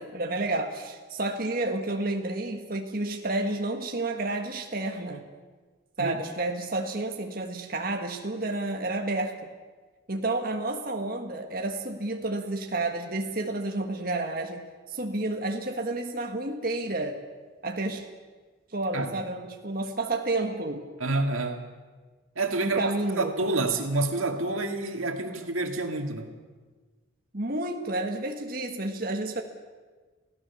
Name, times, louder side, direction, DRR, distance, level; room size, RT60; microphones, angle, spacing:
voice 1, 0.0-5.3 6.0-9.5 10.1-17.2 17.6-18.1 18.7-20.8 22.6-23.3 27.3-29.4, right 2 dB, 45° right, 3 dB, 1.6 m, -30 dB
voice 2, 21.0-21.7 22.4-26.3, right 2 dB, 85° right, 4 dB, 2.4 m, -28 dB
29.0 x 17.0 x 7.2 m, 1.4 s
head